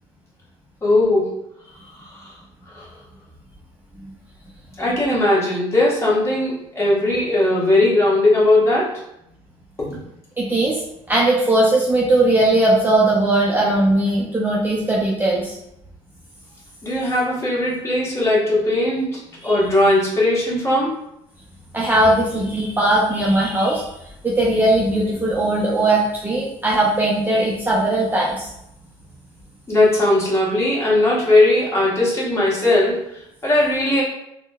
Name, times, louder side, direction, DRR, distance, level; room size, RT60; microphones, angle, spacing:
voice 1, 0.8-1.3 2.0-2.3 2.7-2.9 4.8-8.9 16.8-20.9 29.7-34.0, left 2 dB, 25° left, -6 dB, 1.1 m, -18 dB
voice 2, 10.4-10.8 11.1-15.6 19.4-19.6 21.7-23.9 24.2-28.5, right 1 dB, 15° right, -4 dB, 0.5 m, -19 dB
3.5 x 2.1 x 2.3 m, 0.81 s
cardioid pair, 100°, 12 cm